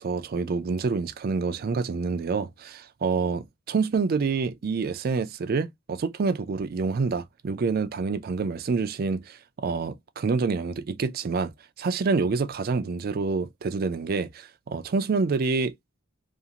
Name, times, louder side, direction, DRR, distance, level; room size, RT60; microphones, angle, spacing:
voice 1, 0.0-11.5 11.8-15.7, right 4 dB, 45° right, 0.4 m, -27 dB
2.4 x 2.4 x 2.8 m
head